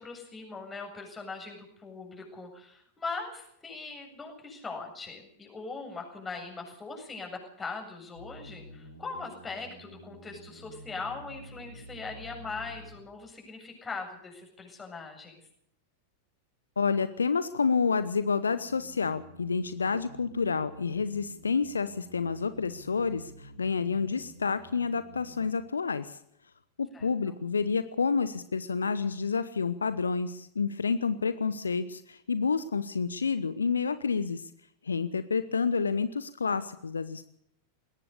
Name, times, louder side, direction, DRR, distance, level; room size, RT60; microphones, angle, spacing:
voice 1, 0.0-15.4 26.9-27.1, left 4 dB, 15° left, 3 dB, 7.6 m, -40 dB
sound 1, 8.1-13.1 18.4-25.5, equal, 90° left, 5.2 m, -50 dB
voice 2, 16.8-26.2 26.8-34.5 34.8-37.2, left 5 dB, 75° left, 14 dB, 1.0 m, -29 dB
21.0 x 18.0 x 6.8 m, 0.71 s
figure-of-eight pair, 90°, 0 cm